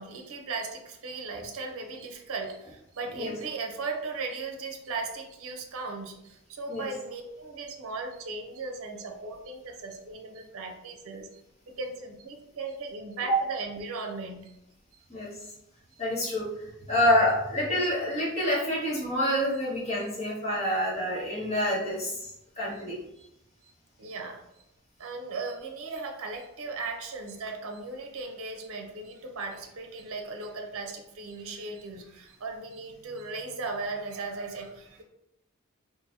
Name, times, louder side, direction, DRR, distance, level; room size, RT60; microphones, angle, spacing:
voice 1, 0.0-14.5 15.4-15.5 24.0-24.4 25.0-35.0, right 3 dB, 65° right, 3 dB, 0.6 m, -37 dB
voice 2, 16.0-16.5 16.9-22.3 22.6-23.0, equal, 30° left, -8 dB, 1.5 m, -27 dB
4.0 x 2.5 x 2.7 m, 0.84 s
head